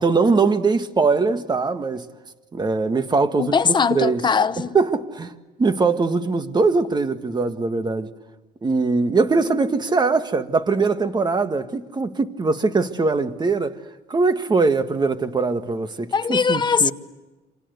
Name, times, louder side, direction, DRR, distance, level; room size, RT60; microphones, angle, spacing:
voice 1, 0.0-2.1 2.5-4.2 4.7-5.3 5.6-8.1 8.6-13.7 14.1-16.9, right 4 dB, 25° right, 1.7 m, -21 dB
voice 2, 3.4-4.8 16.1-16.9, left 5 dB, 25° left, 0.9 m, -20 dB
28.0 x 26.0 x 8.2 m
cardioid pair, 110°, 17 cm